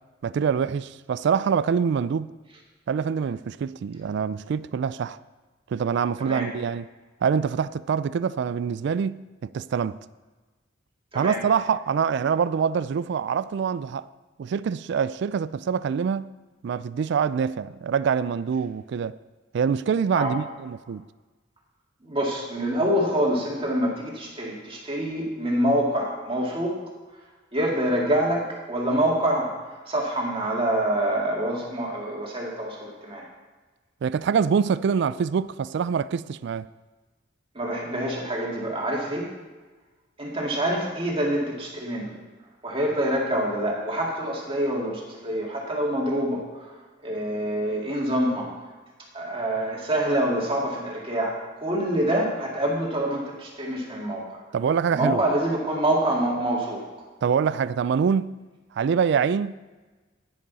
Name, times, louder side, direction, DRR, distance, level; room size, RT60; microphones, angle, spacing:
voice 1, 0.2-2.3 2.9-5.2 5.7-6.9 7.2-10.1 11.1-14.1 14.4-16.3 16.6-19.2 19.5-21.1 34.0-36.7 54.5-55.2 57.2-58.4 58.8-59.7, right 6 dB, 65° right, 0.3 m, -25 dB
voice 2, 22.0-26.8 27.5-33.2 37.5-39.3 40.2-42.1 42.6-46.7 47.0-48.5 49.1-54.4 54.9-56.8, right 1 dB, 30° right, 2.1 m, -26 dB
10.0 x 10.0 x 4.1 m
head